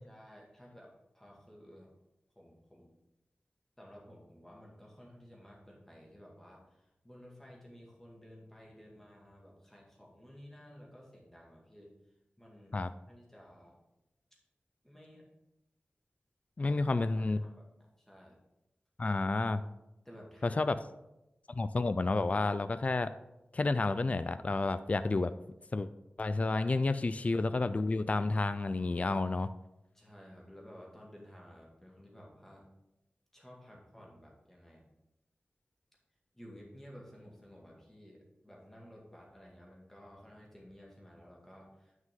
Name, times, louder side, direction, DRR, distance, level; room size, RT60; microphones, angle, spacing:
voice 1, 0.1-1.9 2.3-3.0 3.8-12.0 12.4-13.8 14.3-14.4 14.8-15.3 16.7-17.7 18.1-18.4 20.0-20.6 26.5-26.9 29.9-32.7 33.3-34.9 36.3-42.1, equal, 10° left, -3 dB, 1.9 m, -54 dB
voice 2, 16.6-17.4 19.0-19.6 20.4-20.8 21.5-23.1 23.5-25.3 25.7-25.9 26.2-29.5, left 3 dB, 35° left, 12 dB, 0.3 m, -30 dB
9.5 x 6.2 x 3.7 m, 0.92 s
wide cardioid pair, 95°, 4 cm